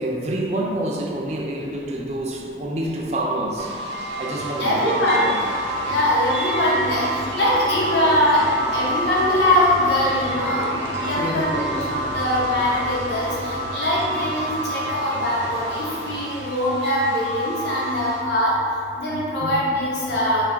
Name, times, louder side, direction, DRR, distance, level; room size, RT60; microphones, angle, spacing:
voice 1, 0.0-3.8 4.2-5.4 11.2-12.0 19.4-19.5, right 1 dB, 35° right, -1 dB, 0.3 m, -27 dB
sound 1, 3.6-18.2, right 1 dB, 85° right, 0.5 m, -29 dB
voice 2, 4.6-5.3 5.9-8.4 8.7-10.7 11.0-18.5 19.0-20.5, left 1 dB, 70° left, -6 dB, 0.9 m, -22 dB
sound 2, 5.2-16.2, left 1 dB, 45° left, 0.4 m, -34 dB
3.1 x 2.3 x 3.8 m, 2.4 s
head